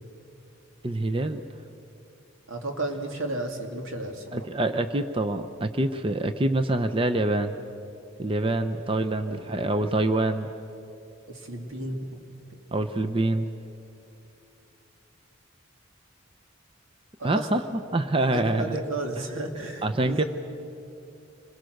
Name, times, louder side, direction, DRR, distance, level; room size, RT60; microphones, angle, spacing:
voice 1, 0.8-1.4 4.3-7.5 8.2-10.5 12.7-13.5 17.2-17.6 17.9-18.7 19.8-20.2, right 2 dB, 25° right, 7 dB, 0.6 m, -25 dB
voice 2, 2.5-4.5 9.3-9.4 11.3-12.1 12.5-12.6 17.2-17.5 18.3-20.2, right 2 dB, 90° right, 3 dB, 2.5 m, -33 dB
26.0 x 21.5 x 6.5 m, 2.8 s
head